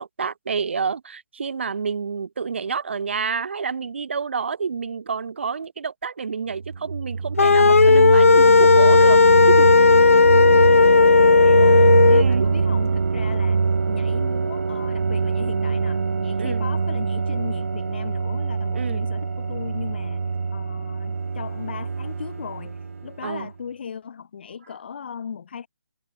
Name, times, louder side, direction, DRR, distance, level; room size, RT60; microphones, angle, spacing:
voice 1, 0.0-9.2 9.5-9.7 12.1-12.5 16.4-16.7 18.7-19.0 23.2-23.5, right 5 dB, 60° right, 2.0 m, -28 dB
sound 1, 6.5-23.2, right 4 dB, 80° right, 0.5 m, -24 dB
sound 2, 7.4-12.2, left 4 dB, 85° left, 0.4 m, -14 dB
voice 2, 10.8-20.2 20.5-25.7, left 7 dB, 50° left, 3.9 m, -37 dB
hypercardioid pair, 160°, 7 cm